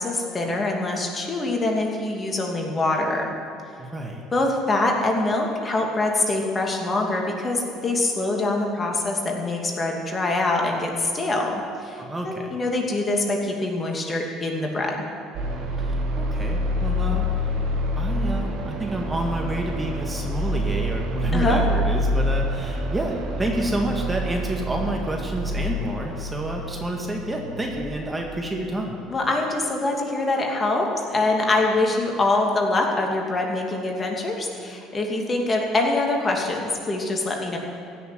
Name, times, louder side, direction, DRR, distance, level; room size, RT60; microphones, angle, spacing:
voice 1, 0.0-3.3 4.3-15.0 21.3-21.6 29.1-37.6, left 2 dB, 30° left, 0 dB, 2.7 m, -24 dB
voice 2, 3.8-4.2 12.0-12.6 15.8-17.3 18.0-29.0, right 1 dB, 15° right, 0 dB, 2.0 m, -29 dB
sound 1, 15.3-28.4, equal, 65° right, 2.4 m, -27 dB
15.5 x 6.9 x 9.7 m, 2.5 s
hypercardioid pair, 70°, 0 cm